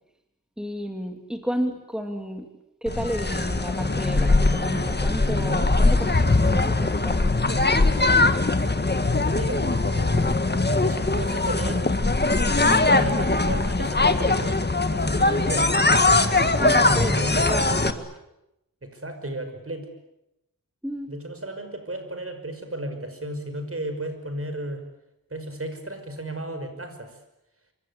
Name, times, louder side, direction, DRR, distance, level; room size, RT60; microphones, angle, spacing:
voice 1, 0.6-2.5 2.8-7.3 12.6-12.9 16.6-18.1 20.8-21.2, equal, ahead, 4 dB, 2.9 m, -32 dB
sound 1, 2.9-17.9, left 2 dB, 30° left, 1.8 m, -21 dB
voice 2, 9.3-12.0 12.9-14.6 14.9-15.7 16.5-17.5 18.8-19.9 21.1-24.8 25.3-27.2, right 1 dB, 40° right, 7 dB, 5.7 m, -33 dB
27.5 x 25.0 x 8.4 m, 0.87 s
wide cardioid pair, 90°, 35 cm